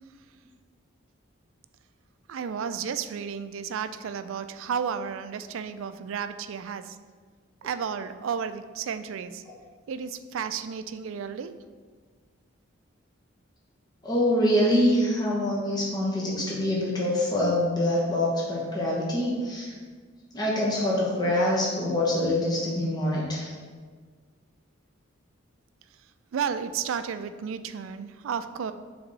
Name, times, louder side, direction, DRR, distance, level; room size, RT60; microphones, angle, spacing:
voice 1, 2.3-7.0 7.6-9.4 9.9-11.5 26.3-28.7, right 7 dB, 75° right, 11 dB, 0.3 m, -32 dB
voice 2, 14.0-19.7 20.3-23.5, left 1 dB, 20° left, -5 dB, 1.0 m, -25 dB
7.0 x 3.5 x 4.0 m, 1.5 s
head